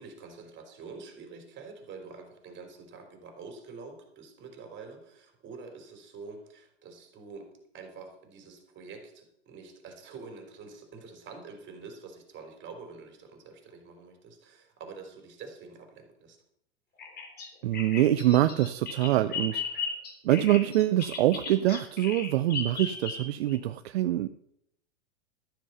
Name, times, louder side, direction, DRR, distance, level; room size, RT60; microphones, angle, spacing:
voice 1, 0.0-16.4, right 4 dB, 35° right, 4 dB, 3.8 m, -46 dB
Bird vocalization bird call bird song, 17.0-23.6, left 5 dB, 30° left, 3.5 m, -36 dB
voice 2, 17.6-19.6 20.2-24.3, right 14 dB, 65° right, 11 dB, 0.7 m, -25 dB
13.0 x 7.7 x 6.7 m, 0.76 s
hypercardioid pair, 110°, 34 cm